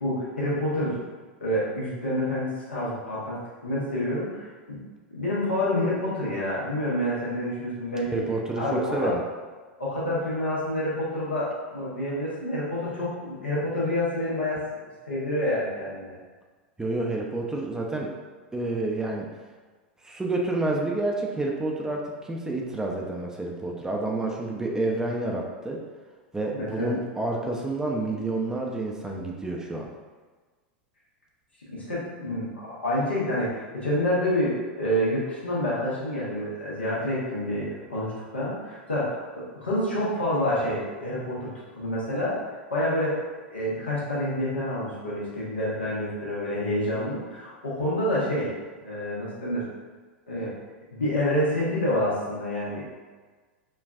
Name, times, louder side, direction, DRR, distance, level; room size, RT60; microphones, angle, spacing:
voice 1, 0.0-0.9 1.4-4.8 5.1-8.2 8.6-9.1 9.8-14.6 15.1-16.2 26.5-26.9 31.7-43.2 43.5-48.5 48.8-49.6 50.3-50.5 50.9-52.9, left 1 dB, 85° left, -7 dB, 1.3 m, -28 dB
voice 2, 8.1-9.2 16.8-18.1 18.5-19.3 20.0-25.8 26.3-29.9, right 2 dB, 10° right, -1 dB, 0.6 m, -29 dB
5.2 x 2.5 x 2.4 m, 1.4 s
hypercardioid pair, 90°, 6 cm